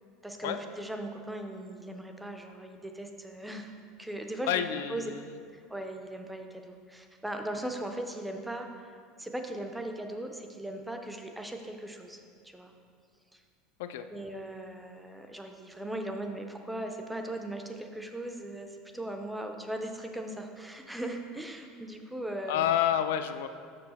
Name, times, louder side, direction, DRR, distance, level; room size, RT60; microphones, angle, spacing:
voice 1, 0.2-3.7 4.0-4.6 4.9-5.1 5.5-12.7 13.3-13.4 14.1-22.7, right 1 dB, 5° right, 4 dB, 0.4 m, -39 dB
voice 2, 4.5-5.4 13.8-14.1 22.5-23.5, left 10 dB, 90° left, 9 dB, 0.4 m, -29 dB
6.8 x 5.7 x 4.1 m, 2.1 s
cardioid pair, 180°, 0 cm